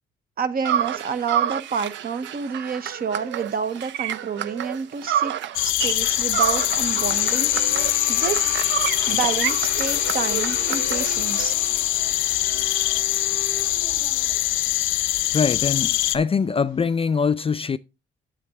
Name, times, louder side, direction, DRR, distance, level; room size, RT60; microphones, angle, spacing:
voice 1, 0.4-5.3 5.6-7.7 8.1-8.5 9.1-11.5, right 6 dB, 50° right, 0.9 m, -29 dB
sound 1, 0.6-5.7 6.0-11.5, right 10 dB, 70° right, 0.5 m, -29 dB
sound 2, 3.4-17.2, right 4 dB, 85° right, 1.9 m, -37 dB
sound 3, 5.5-16.2, left 16 dB, 90° left, 0.5 m, -23 dB
voice 2, 15.3-17.8, left 5 dB, 30° left, 0.4 m, -23 dB
8.4 x 7.4 x 3.5 m
cardioid pair, 90°, 20 cm